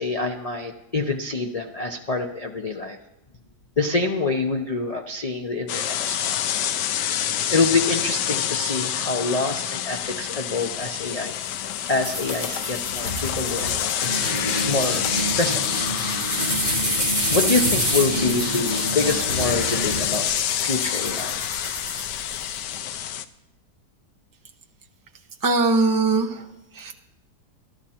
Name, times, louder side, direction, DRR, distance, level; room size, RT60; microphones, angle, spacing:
voice 1, 0.0-3.0 3.8-6.6 7.5-11.3 11.9-15.1 15.3-15.6 16.3-16.5 17.3-20.3 20.6-21.4, left 3 dB, 60° left, 3 dB, 0.4 m, -26 dB
sound 1, 5.7-23.3, left 10 dB, 85° left, 1.3 m, -27 dB
sound 2, 12.0-22.6, equal, 40° left, 6.1 m, -27 dB
voice 2, 25.4-26.4 26.7-26.9, right 3 dB, 20° right, 2 dB, 0.5 m, -20 dB
13.5 x 12.5 x 4.3 m, 0.92 s
omnidirectional pair, 1.8 m